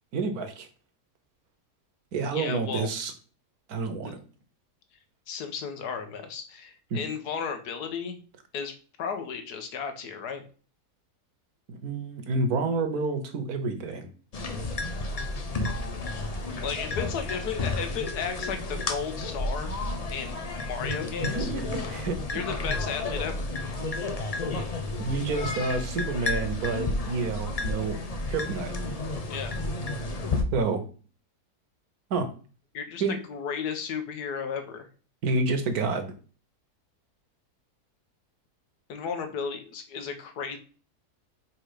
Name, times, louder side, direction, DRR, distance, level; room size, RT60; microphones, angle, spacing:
voice 1, 0.1-0.7 2.1-3.1 3.7-4.2 6.9-7.0 11.7-14.1 21.2-22.2 25.0-28.0 28.2-28.7 30.5-30.8 32.1-32.3 33.0-33.2 35.2-36.1, right 3 dB, 70° right, 8 dB, 1.4 m, -29 dB
voice 2, 2.3-2.9 4.0-4.2 5.3-8.2 8.5-10.4 16.6-19.7 20.1-21.5 22.3-23.4 29.3-29.5 32.7-34.9 38.9-40.6, left 6 dB, 80° left, 7 dB, 1.5 m, -34 dB
sound 1, 14.3-30.4, left 2 dB, 45° left, 0.4 m, -32 dB
4.8 x 4.4 x 4.9 m, 0.38 s
omnidirectional pair, 1.7 m